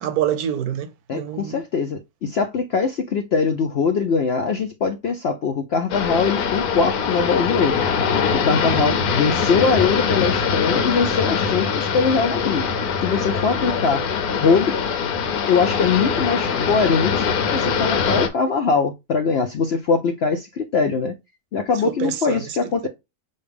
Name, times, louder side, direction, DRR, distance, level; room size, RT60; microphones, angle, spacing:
voice 1, 0.0-1.6 8.7-8.9 21.8-22.9, right 10 dB, 80° right, 1.2 m, -27 dB
voice 2, 1.1-7.8 8.3-12.6 13.0-14.0 14.3-14.8 15.5-21.1 21.5-22.9, left 5 dB, 60° left, 0.7 m, -22 dB
sound 1, 5.9-18.3, left 6 dB, 75° left, 1.3 m, -22 dB
6.5 x 2.4 x 3.4 m
omnidirectional pair, 1.6 m